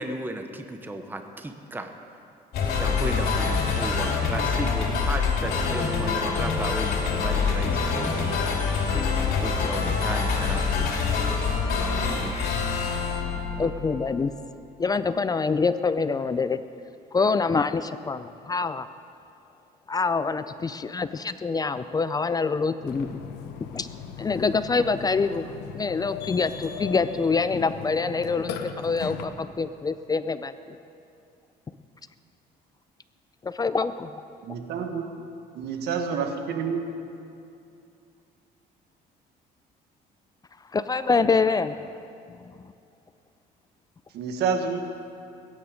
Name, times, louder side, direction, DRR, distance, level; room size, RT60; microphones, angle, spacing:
voice 1, 0.0-1.9 2.7-8.6 8.9-11.2 11.7-12.6, right 2 dB, 10° right, 6 dB, 0.9 m, -35 dB
sound 1, 2.5-14.1, left 5 dB, 70° left, 2.9 m, -25 dB
voice 2, 13.6-14.3 14.8-16.6 17.1-18.9 19.9-23.2 23.7-23.9 24.2-30.8 33.4-34.1 40.7-41.8, left 4 dB, 25° left, 12 dB, 0.4 m, -25 dB
Burping eructation, 22.9-29.2, left 7 dB, 85° left, 1.1 m, -38 dB
voice 3, 34.4-35.1 35.6-36.8 44.1-44.9, right 6 dB, 75° right, 5 dB, 1.5 m, -28 dB
21.5 x 9.6 x 5.1 m, 2.5 s
cardioid pair, 110°, 17 cm